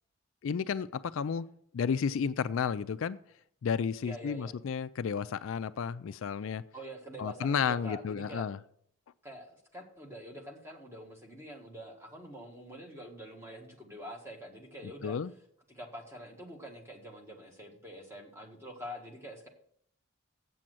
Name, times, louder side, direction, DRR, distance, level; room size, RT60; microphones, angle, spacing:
voice 1, 0.4-1.5 1.7-3.2 3.6-6.6 7.2-8.6 14.8-15.3, left 6 dB, 65° left, 13 dB, 0.3 m, -32 dB
voice 2, 4.0-4.5 6.7-8.4 9.2-15.2 15.7-19.5, equal, 10° right, 1 dB, 1.6 m, -46 dB
7.7 x 7.4 x 7.7 m, 0.68 s
head